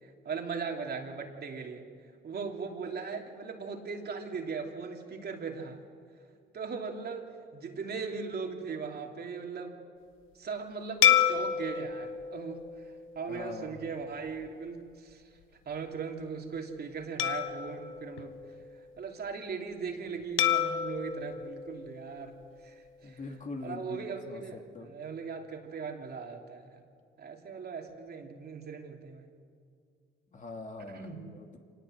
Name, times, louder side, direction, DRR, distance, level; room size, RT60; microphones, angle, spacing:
voice 1, 0.0-1.8 2.2-5.8 6.5-9.8 10.3-15.3 15.6-18.3 18.7-22.3 22.6-23.2 23.6-26.8 27.2-29.4 30.9-31.3, right 5 dB, 55° right, 2 dB, 3.1 m, -39 dB
sound 1, 11.0-13.7 14.3-14.5 17.2-19.0 20.4-22.7, left 9 dB, 90° left, 1.3 m, -30 dB
voice 2, 13.3-13.7 23.0-24.4 24.7-24.9 30.3-31.6, left 3 dB, 40° left, 3 dB, 2.9 m, -42 dB
26.0 x 19.0 x 7.9 m, 2.2 s
cardioid pair, 90°, 20 cm